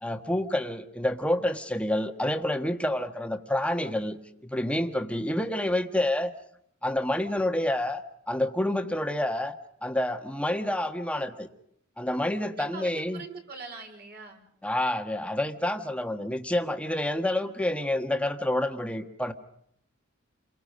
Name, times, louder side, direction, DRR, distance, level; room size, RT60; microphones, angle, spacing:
voice 1, 0.0-6.3 6.8-9.5 9.8-11.5 12.0-13.2 14.6-19.3, left 1 dB, 5° left, 6 dB, 1.4 m, -28 dB
voice 2, 12.6-14.5, right 4 dB, 50° right, 3 dB, 4.3 m, -42 dB
29.5 x 23.0 x 5.3 m, 0.70 s
head